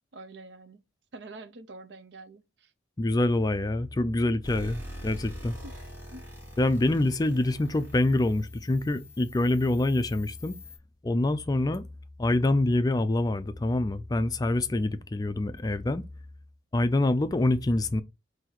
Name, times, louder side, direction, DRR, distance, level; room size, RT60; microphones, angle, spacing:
voice 1, 0.1-0.8 1.1-2.7 5.6-5.7 6.1-6.2, right 2 dB, 65° right, 0.6 m, -46 dB
voice 2, 3.0-5.6 6.6-10.6 11.0-11.8 12.2-16.1 16.7-18.0, left 2 dB, 20° left, 0.3 m, -26 dB
sound 1, 4.4-10.8, equal, 10° right, 1.9 m, -44 dB
4.0 x 2.7 x 4.3 m
head